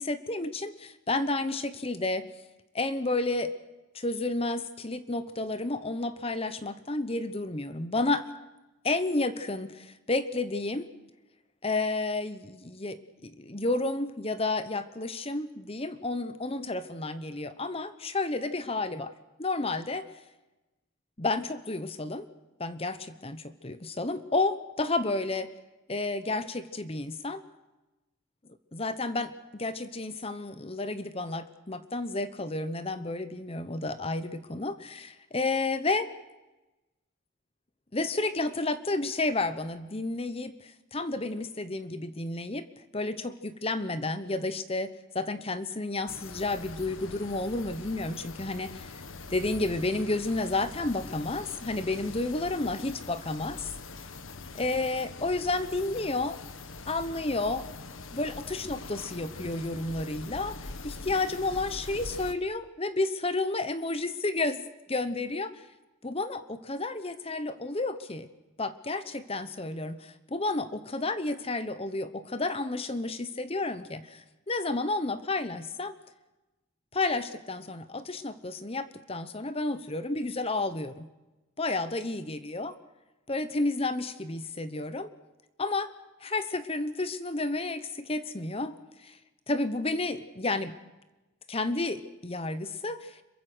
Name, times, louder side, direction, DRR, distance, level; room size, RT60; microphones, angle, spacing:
voice 1, 0.0-2.3 2.7-3.5 3.9-8.2 8.8-10.9 11.6-19.1 19.4-20.0 21.2-22.3 22.6-25.5 25.9-27.4 28.7-36.1 37.9-42.7 42.9-49.0 49.3-53.7 54.5-56.4 56.9-57.7 58.1-64.6 64.9-65.6 66.0-68.3 68.6-75.9 76.9-81.1 81.6-82.7 83.3-85.1 85.6-85.9 86.2-88.8 89.0-89.2 89.5-90.7 91.5-93.2, left 2 dB, 30° left, 12 dB, 1.0 m, -31 dB
sound 1, 46.1-62.3, left 3 dB, 75° left, 1.5 m, -43 dB
26.5 x 23.0 x 6.3 m, 1.0 s
head